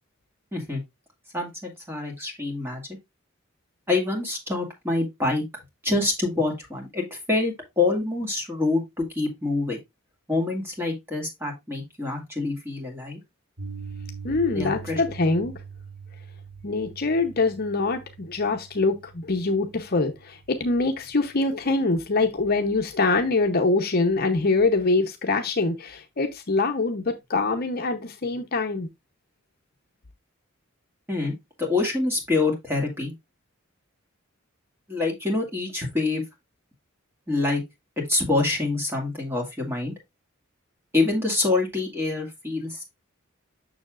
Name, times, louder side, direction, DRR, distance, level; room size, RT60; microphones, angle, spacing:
voice 1, 1.3-2.8 3.9-5.4 5.8-9.8 10.3-13.2 14.5-15.0 31.1-31.3 31.6-33.1 34.9-36.2 37.3-37.6 38.1-39.9 40.9-42.8, left 3 dB, 10° right, 2.1 m, -26 dB
Piano, 13.6-21.7, right 5 dB, 55° right, 3.4 m, -43 dB
voice 2, 14.2-15.5 16.6-28.9, left 3 dB, 45° left, 0.8 m, -24 dB
7.0 x 6.4 x 2.4 m
head